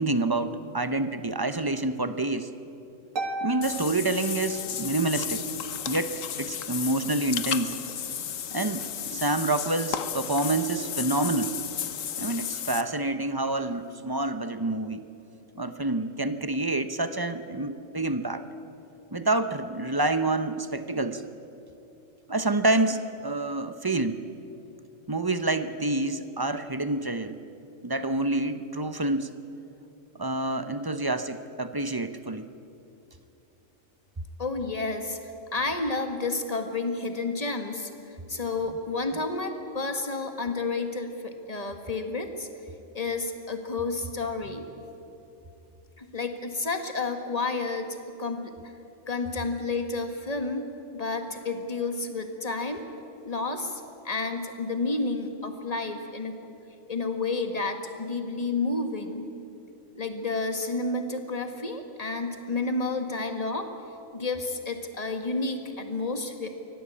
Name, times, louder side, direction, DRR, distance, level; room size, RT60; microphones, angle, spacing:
voice 1, 0.0-2.5 3.4-5.4 5.9-7.8 8.5-11.6 12.2-15.1 15.6-18.4 19.1-21.2 22.3-24.2 25.1-27.4 27.8-29.3 30.2-32.5, right 2 dB, 20° right, 10 dB, 0.7 m, -28 dB
Harp, 3.2-5.0, right 2 dB, 75° right, 2.0 m, -35 dB
Water / Bathtub (filling or washing), 3.6-12.8, left 9 dB, 80° left, 1.3 m, -34 dB
voice 2, 34.4-42.5 42.9-44.6 46.0-48.5 49.1-50.7 50.9-52.9 53.2-56.4 56.9-59.3 59.9-63.7 64.1-66.5, left 3 dB, 30° left, 6 dB, 1.8 m, -30 dB
24.5 x 17.5 x 8.4 m, 2.8 s
omnidirectional pair, 1.4 m